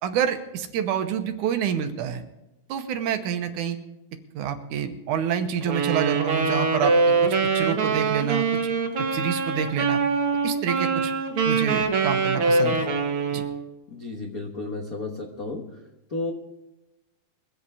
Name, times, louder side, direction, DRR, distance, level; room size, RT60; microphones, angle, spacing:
voice 1, 0.0-2.2 2.7-3.8 4.4-6.9 7.2-8.4 9.1-10.0 10.4-11.1 11.5-12.9 13.3-13.4, right 8 dB, 75° right, 8 dB, 2.2 m, -27 dB
Wind instrument woodwind instrument, 5.6-13.6, right 4 dB, 50° right, 1.8 m, -23 dB
voice 2, 13.9-15.8 16.1-16.3, left 3 dB, 65° left, 1 dB, 0.8 m, -33 dB
23.0 x 7.9 x 4.9 m, 0.95 s
omnidirectional pair, 3.8 m